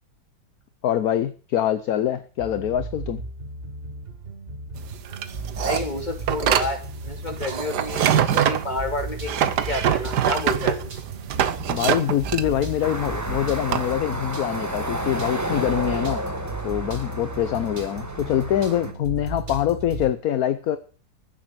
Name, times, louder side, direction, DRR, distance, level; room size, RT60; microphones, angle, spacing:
voice 1, 0.8-3.2 11.7-16.2 16.6-20.8, left 11 dB, 60° left, 1.1 m, -24 dB
sound 1, 2.4-20.1, right 3 dB, 35° right, 1.7 m, -36 dB
sound 2, 4.8-13.9, right 9 dB, 65° right, 1.5 m, -24 dB
voice 2, 5.5-10.9, left 2 dB, 25° left, 2.8 m, -30 dB
sound 3, 12.8-18.9, right 1 dB, 10° right, 1.4 m, -31 dB
15.0 x 7.9 x 7.4 m
omnidirectional pair, 2.0 m